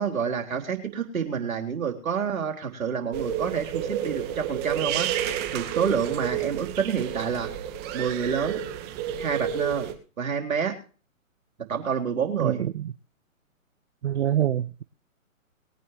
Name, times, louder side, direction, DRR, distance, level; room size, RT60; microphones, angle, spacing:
voice 1, 0.0-7.5 7.9-8.6 9.2-9.9 10.2-10.7 11.7-12.6, right 7 dB, 70° right, 4.0 m, -28 dB
sound 1, 3.1-9.9, right 10 dB, 25° right, 2.2 m, -30 dB
voice 2, 12.3-12.9 14.0-14.8, right 11 dB, 55° right, 0.8 m, -25 dB
22.0 x 9.6 x 3.2 m
hypercardioid pair, 140°, 42 cm